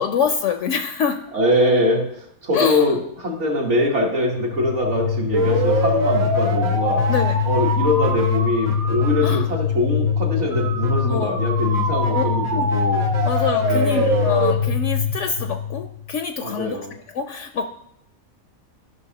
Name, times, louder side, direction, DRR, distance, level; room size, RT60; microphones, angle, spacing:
voice 1, 0.0-1.2 2.5-2.8 7.1-7.4 9.2-9.4 11.0-11.3 12.1-12.2 12.6-12.7 13.2-16.8 17.1-17.7, left 7 dB, 70° left, 7 dB, 0.8 m, -25 dB
voice 2, 1.3-7.1 7.4-13.0 13.7-14.3 16.4-16.9, left 1 dB, 55° right, -2 dB, 1.7 m, -23 dB
sound 1, 4.3-16.1, left 3 dB, 80° right, 1.9 m, -21 dB
13.5 x 5.7 x 2.8 m, 0.72 s
omnidirectional pair, 1.4 m